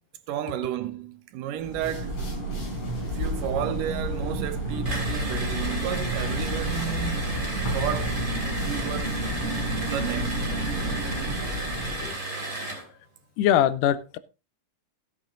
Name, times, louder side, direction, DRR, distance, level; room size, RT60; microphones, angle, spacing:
voice 1, 0.3-2.2 3.0-7.4 7.7-8.2 8.6-9.1 9.8-10.6, right 10 dB, 85° right, 2.6 m, -32 dB
sound 1, 1.6-12.1, equal, 45° left, 5.6 m, -31 dB
sound 2, 3.2-11.3, right 3 dB, 40° right, 1.2 m, -35 dB
sound 3, 4.8-12.9, right 2 dB, 15° right, 2.9 m, -34 dB
voice 2, 13.4-14.2, left 11 dB, 80° left, 2.3 m, -22 dB
14.5 x 8.4 x 3.9 m
omnidirectional pair, 3.7 m